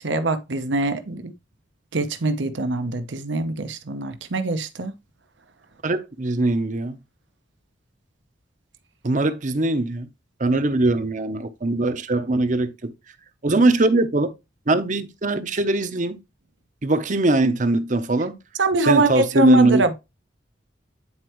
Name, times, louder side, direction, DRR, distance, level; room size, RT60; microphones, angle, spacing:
voice 1, 0.0-1.3 1.9-4.9 18.6-19.9, right 2 dB, 80° right, 0.9 m, -23 dB
voice 2, 5.8-7.0 9.0-10.1 10.4-12.9 13.4-14.3 14.7-16.2 16.8-18.4 18.9-19.8, right 2 dB, 45° right, 0.8 m, -21 dB
9.6 x 4.4 x 3.1 m
head